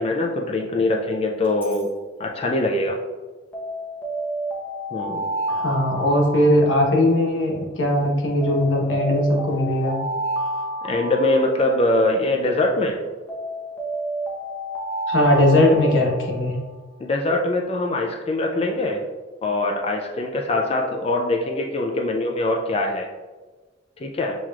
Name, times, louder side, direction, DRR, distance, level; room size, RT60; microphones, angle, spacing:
voice 1, 0.0-1.9 2.2-3.0 4.9-5.3 10.8-13.0 17.0-19.0 19.4-23.1 24.0-24.4, left 2 dB, 30° left, 1 dB, 0.4 m, -23 dB
Alarm, 1.4-1.8 3.5-7.3 8.4-12.2 13.3-16.5, right 1 dB, 10° left, 0.8 m, -30 dB
voice 2, 5.5-10.0 15.1-16.5, left 1 dB, 85° left, -1 dB, 1.1 m, -19 dB
7.3 x 3.0 x 2.4 m, 1.3 s
head